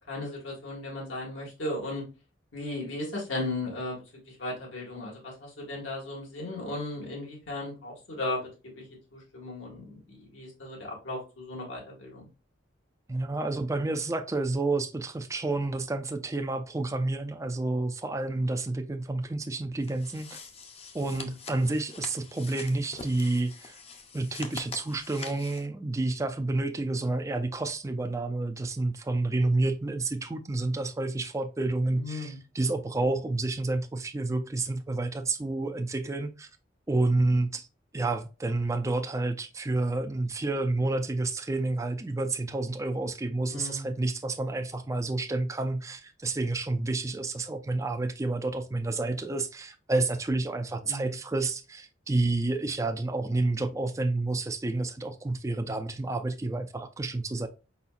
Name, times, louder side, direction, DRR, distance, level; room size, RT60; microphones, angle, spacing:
voice 1, 0.1-2.0 2.5-4.0 4.4-8.4 8.8-8.9 9.1-12.3 21.1-21.3 29.6-29.7 32.0-32.4 43.5-43.9 50.8-51.1, left 1 dB, 85° left, 1.9 m, -36 dB
voice 2, 13.1-20.4 20.9-23.8 24.1-36.5 36.9-37.7 37.9-57.5, right 2 dB, 15° right, 0.4 m, -29 dB
sound 1, 19.8-25.7, left 4 dB, 35° left, 0.6 m, -44 dB
4.7 x 4.2 x 2.4 m
head